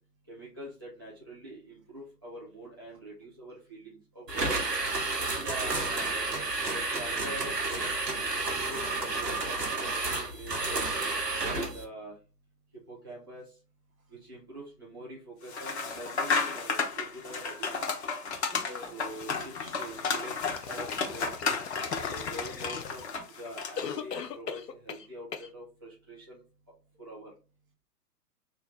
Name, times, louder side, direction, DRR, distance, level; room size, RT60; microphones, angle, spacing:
voice 1, 0.3-4.8 6.1-6.2 6.7-8.0 8.4-11.1 11.5-12.1 12.9-13.5 14.1-17.8 18.9-20.4 20.7-21.5 21.8-23.0 23.4-26.4 27.0-27.3, right 1 dB, 15° right, 0.4 m, -45 dB
sound 1, 4.3-11.8, right 3 dB, 85° right, 1.0 m, -31 dB
voice 2, 5.4-6.1 18.5-19.0, right 2 dB, 60° right, 1.1 m, -42 dB
sound 2, 15.5-24.0, left 5 dB, 45° left, 0.8 m, -33 dB
sound 3, 20.4-23.3 23.8-25.1 25.3-25.5, left 7 dB, 80° left, 0.6 m, -39 dB
3.1 x 2.3 x 3.9 m
figure-of-eight pair, 120°, 48 cm